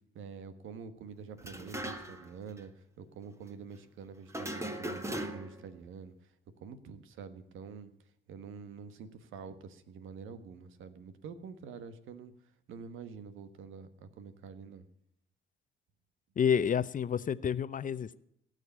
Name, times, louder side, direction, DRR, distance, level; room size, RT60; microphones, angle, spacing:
voice 1, 0.1-2.7 3.0-6.3 6.6-7.9 8.3-12.3 12.7-14.9, right 6 dB, 85° right, 11 dB, 1.4 m, -47 dB
sound 1, 1.4-2.3 2.6-2.7 4.3-5.7, right 1 dB, 15° right, 1.7 m, -38 dB
voice 2, 16.4-18.2, left 7 dB, 40° left, 16 dB, 0.7 m, -29 dB
18.0 x 6.6 x 8.7 m, 0.76 s
cardioid pair, 90°, 20 cm